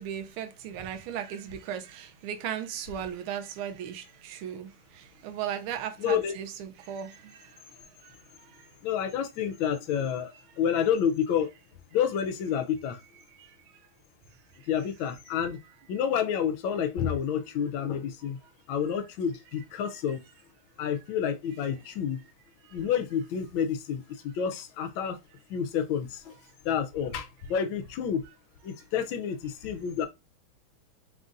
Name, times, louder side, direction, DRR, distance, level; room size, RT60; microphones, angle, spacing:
voice 1, 0.0-7.6 8.0-8.7 13.4-13.9 14.6-14.7 22.6-22.9, right 9 dB, 90° right, 1.4 m, -37 dB
voice 2, 6.0-6.3 8.8-11.5 11.9-13.0 14.7-15.6 15.9-18.4 18.7-20.2 20.8-22.2 22.7-25.2 25.5-26.3 26.6-28.2 28.6-30.1, left 8 dB, 75° left, 1.4 m, -29 dB
4.0 x 2.4 x 3.8 m
omnidirectional pair, 2.3 m